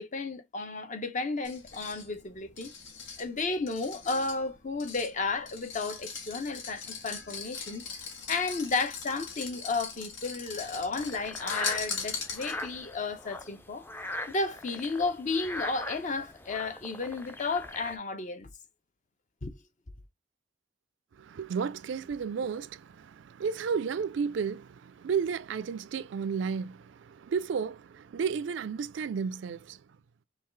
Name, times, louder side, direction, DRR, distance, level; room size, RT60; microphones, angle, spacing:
voice 1, 0.0-2.7 3.2-7.8 8.3-13.8 14.3-18.5 19.4-19.5, left 3 dB, 40° left, 0.7 m, -33 dB
sound 1, 1.4-12.8, left 5 dB, 80° left, 1.3 m, -41 dB
sound 2, 10.9-18.0, left 1 dB, 10° left, 0.4 m, -41 dB
voice 2, 21.2-29.8, right 6 dB, 75° right, 0.4 m, -33 dB
5.6 x 2.4 x 3.1 m
head